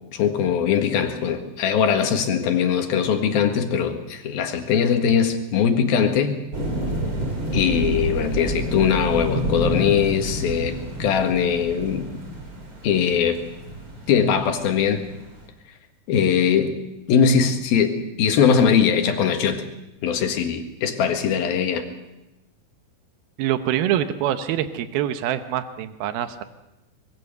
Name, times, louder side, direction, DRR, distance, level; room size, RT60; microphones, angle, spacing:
voice 1, 0.1-6.4 7.5-12.1 12.8-13.4 14.1-15.0 16.1-16.7 17.1-19.6 20.0-21.9, left 7 dB, 80° left, 5 dB, 3.6 m, -21 dB
sound 1, 6.5-15.4, right 1 dB, 35° right, 4.4 m, -29 dB
voice 2, 23.4-26.4, right 11 dB, 85° right, 10 dB, 2.9 m, -25 dB
24.5 x 22.0 x 6.7 m, 0.94 s
omnidirectional pair, 4.2 m